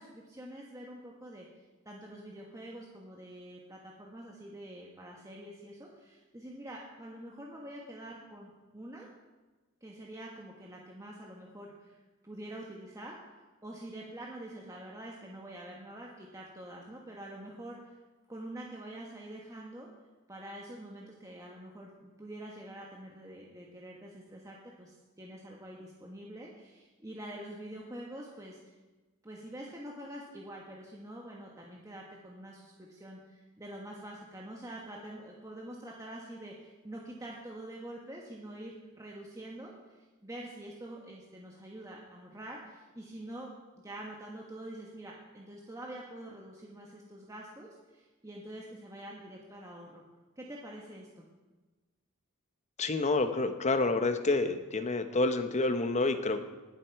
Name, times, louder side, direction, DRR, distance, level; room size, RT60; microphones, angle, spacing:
voice 1, 0.0-1.5 1.8-9.1 9.8-12.0 12.2-18.0 18.3-19.9 20.3-28.6 29.2-43.5 43.8-50.0 50.4-51.3, right 1 dB, 15° right, -2 dB, 1.3 m, -46 dB
voice 2, 52.8-56.5, left 3 dB, 35° left, 8 dB, 0.9 m, -28 dB
19.0 x 7.7 x 4.6 m, 1.2 s
head